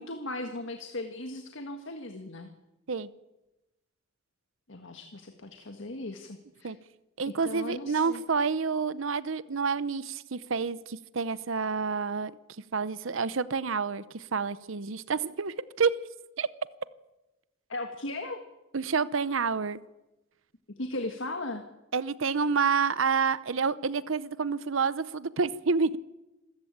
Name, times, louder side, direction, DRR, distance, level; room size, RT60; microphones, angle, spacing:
voice 1, 0.0-2.5 4.7-6.7 7.2-8.2 17.7-18.4 20.8-21.6, left 2 dB, 65° left, 6 dB, 1.7 m, -37 dB
voice 2, 7.2-12.3 12.7-15.9 16.4-16.5 18.7-19.8 21.9-26.0, right 5 dB, 70° right, 17 dB, 0.8 m, -28 dB
26.5 x 14.5 x 8.7 m, 1.0 s
head